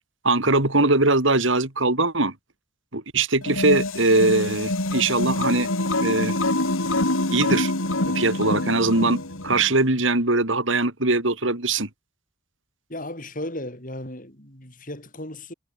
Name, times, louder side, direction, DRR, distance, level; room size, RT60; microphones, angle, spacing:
voice 1, 0.2-2.3 2.9-5.7 6.0-6.4 7.3-7.7 8.1-11.9, right 2 dB, 65° right, 3.2 m, -21 dB
sound 1, 3.4-9.7, left 2 dB, 80° left, 4.0 m, -25 dB
voice 2, 12.9-15.5, left 1 dB, 40° left, 6.2 m, -35 dB
head